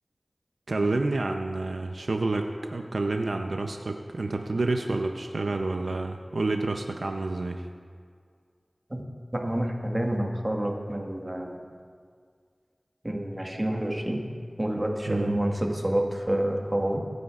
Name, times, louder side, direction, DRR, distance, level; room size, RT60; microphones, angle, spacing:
voice 1, 0.7-7.7 15.1-15.3, right 2 dB, 85° right, 4 dB, 0.6 m, -29 dB
voice 2, 9.3-11.6 13.0-14.3 14.6-17.0, right 1 dB, 30° right, 1 dB, 1.6 m, -28 dB
24.5 x 9.3 x 2.4 m, 2.1 s
wide cardioid pair, 45°, 0 cm